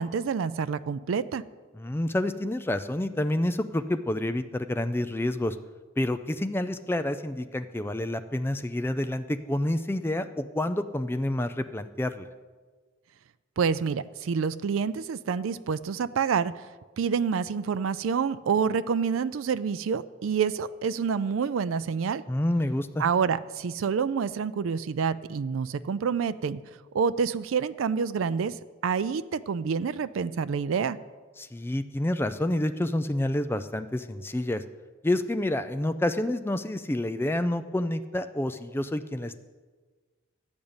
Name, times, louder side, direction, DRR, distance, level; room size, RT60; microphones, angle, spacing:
voice 1, 0.0-1.4 13.6-16.6 17.0-22.2 23.0-26.6 26.9-28.5 28.8-31.0, right 6 dB, 80° right, 14 dB, 0.4 m, -27 dB
voice 2, 1.8-5.6 6.0-12.3 22.3-23.0 31.4-34.6 35.0-39.4, left 1 dB, 10° left, 10 dB, 0.3 m, -28 dB
12.0 x 5.2 x 8.8 m, 1.4 s
head